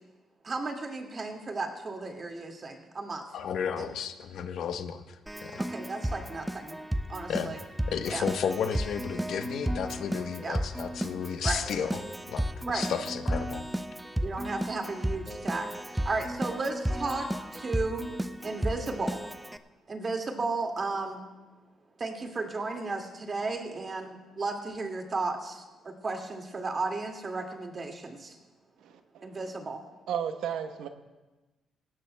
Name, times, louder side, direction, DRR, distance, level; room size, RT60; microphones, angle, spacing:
voice 1, 0.4-3.2 3.7-3.9 5.6-6.8 7.1-7.6 8.1-8.3 10.4-10.6 11.4-11.6 12.7-12.9 14.2-15.7 16.1-17.3 17.5-18.0 18.4-19.2 19.9-21.2 22.0-28.4 29.2-29.8, right 3 dB, 35° right, 3 dB, 2.1 m, -34 dB
voice 2, 3.3-5.6 7.3-7.5 7.9-13.6, left 7 dB, 70° left, 8 dB, 0.9 m, -33 dB
Keyboard (musical), 5.3-19.6, equal, 5° right, 0.6 m, -33 dB
voice 3, 28.8-29.5 30.1-30.9, right 8 dB, 85° right, 7 dB, 0.9 m, -34 dB
18.5 x 16.5 x 2.2 m, 1.2 s
cardioid pair, 90°, 0 cm